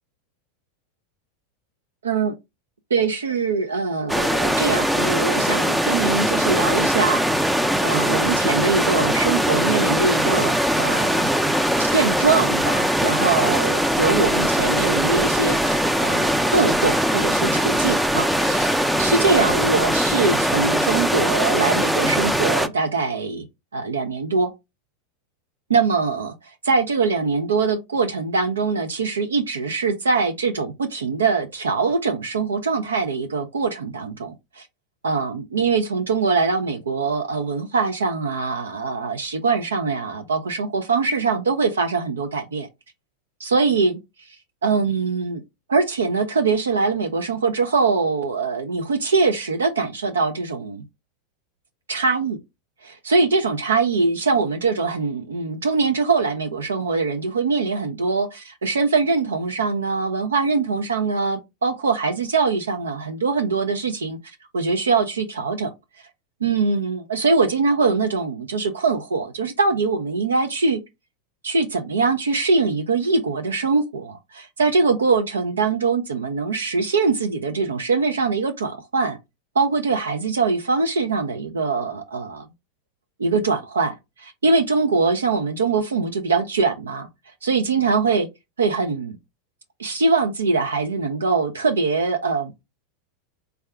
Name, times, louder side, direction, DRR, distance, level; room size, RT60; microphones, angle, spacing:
voice 1, 2.0-2.3 2.9-7.5 7.8-11.3 11.8-23.4 23.7-24.5 25.7-26.3 26.6-34.7 35.0-42.7 43.4-44.0 44.6-45.4 45.7-50.8 51.9-52.4 52.8-64.2 64.5-65.7 66.4-70.8 71.4-79.2 79.6-82.5 83.2-87.1 87.4-88.3 88.6-89.2 89.8-92.5, right 4 dB, 85° right, 0.4 m, -22 dB
sound 1, 4.1-22.7, equal, 5° right, 0.4 m, -21 dB
3.5 x 2.3 x 3.2 m
hypercardioid pair, 95°, 0 cm